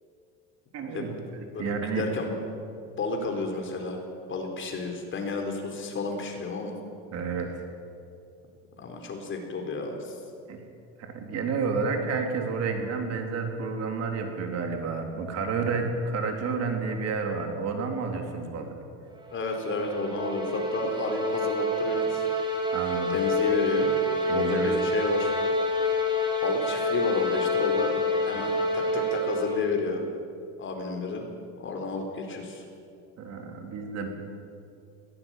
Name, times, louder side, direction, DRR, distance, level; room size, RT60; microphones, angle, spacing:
voice 1, 0.7-2.1 7.1-7.6 10.5-10.6 11.0-18.8 22.7-23.2 24.3-25.0 28.3-28.4 33.2-34.1, right 4 dB, 45° right, 4 dB, 3.9 m, -30 dB
voice 2, 1.5-2.3 3.0-4.0 4.3-6.8 8.8-10.2 19.3-22.3 23.1-23.9 24.3-25.3 26.4-27.9 28.3-30.0 30.6-31.3 31.6-32.6, left 3 dB, 35° left, 3 dB, 4.6 m, -31 dB
sound 1, 19.2-29.8, left 1 dB, 15° right, 5.2 m, -27 dB
21.0 x 18.0 x 9.3 m, 2.5 s
supercardioid pair, 120°, 34 cm